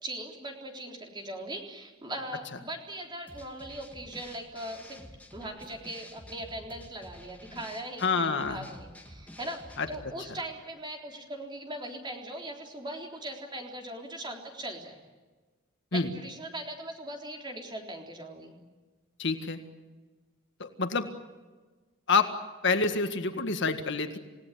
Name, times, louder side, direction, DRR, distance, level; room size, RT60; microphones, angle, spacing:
voice 1, 0.0-5.0 5.3-15.0 15.9-18.5, right 1 dB, 20° right, 2 dB, 3.8 m, -40 dB
sound 1, 3.3-10.1, left 1 dB, 5° left, 2.3 m, -50 dB
voice 2, 8.0-8.6 9.8-9.9 15.9-16.1 19.2-19.7 20.6-21.1 22.1-22.3 22.6-24.2, left 4 dB, 55° left, 7 dB, 1.8 m, -27 dB
28.5 x 17.5 x 9.3 m, 1.3 s
head